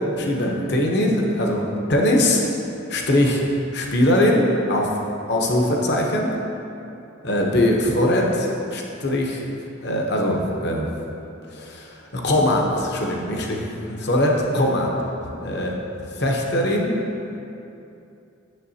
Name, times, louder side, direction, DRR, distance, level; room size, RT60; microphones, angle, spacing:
voice 1, 0.0-2.4 2.9-3.4 3.7-4.9 5.3-6.3 7.2-9.5 9.8-10.9 11.5-13.6 13.9-14.9 15.4-15.7 16.2-17.0, left 1 dB, 50° left, 0 dB, 0.8 m, -21 dB
9.8 x 6.9 x 2.8 m, 2.7 s
head